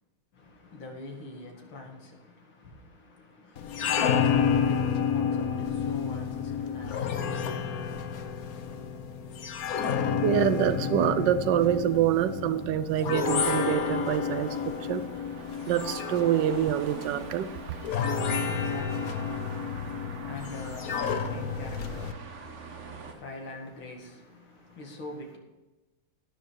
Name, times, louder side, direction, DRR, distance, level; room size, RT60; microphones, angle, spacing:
voice 1, 0.3-8.0 17.9-25.4, left 2 dB, 90° left, 2.9 m, -45 dB
sound 1, 3.6-22.1, left 6 dB, 55° left, 1.2 m, -30 dB
voice 2, 10.2-15.1 15.7-17.5, right 10 dB, 70° right, 1.3 m, -26 dB
sound 2, 12.9-23.1, right 4 dB, 40° right, 1.4 m, -46 dB
11.5 x 10.0 x 4.6 m
omnidirectional pair, 2.2 m